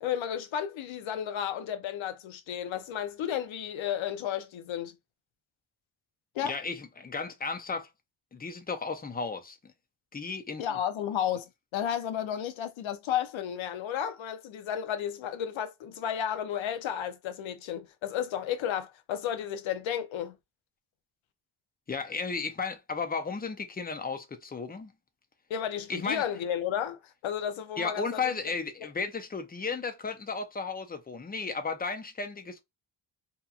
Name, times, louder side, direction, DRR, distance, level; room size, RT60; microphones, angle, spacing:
voice 1, 0.0-4.9 6.4-6.6 10.6-20.4 25.5-28.2, left 9 dB, 90° left, 0.6 m, -33 dB
voice 2, 6.4-7.9 8.3-9.6 10.1-10.6 21.9-24.9 25.9-26.2 27.8-32.6, left 4 dB, 20° left, 0.5 m, -34 dB
2.9 x 2.2 x 2.3 m
wide cardioid pair, 110°, 45 cm